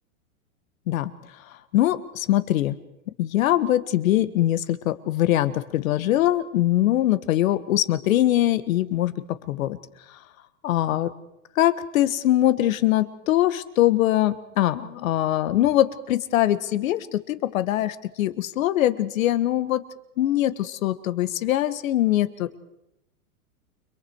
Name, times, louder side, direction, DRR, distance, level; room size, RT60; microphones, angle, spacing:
voice 1, 1.7-2.8 3.2-9.1 9.5-9.8 10.6-11.1 11.6-19.8 20.2-22.6, left 13 dB, 70° left, 13 dB, 1.6 m, -22 dB
30.0 x 22.5 x 4.7 m, 0.84 s
supercardioid pair, 140°, 42 cm